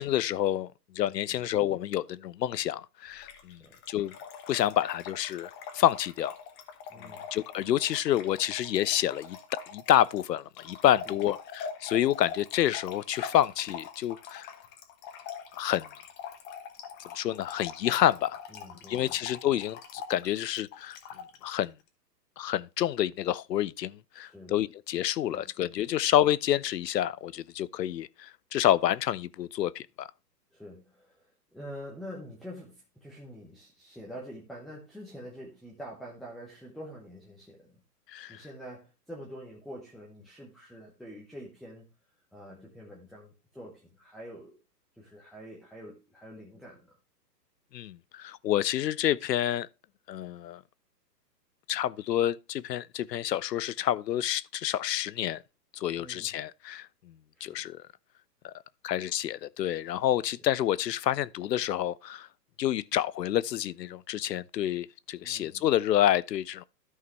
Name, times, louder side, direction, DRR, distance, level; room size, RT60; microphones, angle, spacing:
voice 1, 0.0-4.1 4.5-6.4 7.0-9.4 9.7-14.5 15.6-15.9 17.1-18.4 18.7-21.0 21.4-21.7 22.4-30.1 38.1-38.4 47.7-49.7 50.1-50.6 51.7-55.4 55.7-57.1 57.4-57.8 58.4-58.5 58.8-62.3 62.6-66.6, left 12 dB, 75° left, 0.7 m, -28 dB
Trickle dribble / Fill (with liquid), 3.2-21.7, left 7 dB, 20° left, 1.1 m, -44 dB
voice 2, 6.9-7.3 11.1-11.2 18.5-19.2 24.1-24.6 25.3-25.4 30.5-37.8 38.3-41.9 42.3-44.6 45.0-47.0 56.0-56.4 57.3-57.6 65.2-65.7, equal, ahead, 0.8 m, -46 dB
13.0 x 5.7 x 3.1 m
hypercardioid pair, 140°, 50 cm